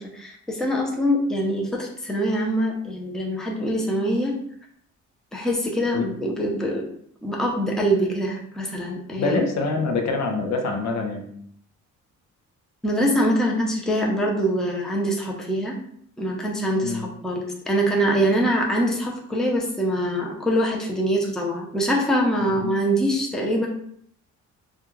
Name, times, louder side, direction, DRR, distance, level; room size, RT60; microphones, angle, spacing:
voice 1, 0.1-4.4 5.3-6.9 7.2-9.4 12.8-15.8 16.2-23.7, equal, ahead, -1 dB, 0.5 m, -24 dB
voice 2, 9.2-11.3 16.8-17.1 22.4-22.7, left 3 dB, 65° left, 3 dB, 0.6 m, -25 dB
2.3 x 2.2 x 3.0 m, 0.65 s
cardioid pair, 90°, 30 cm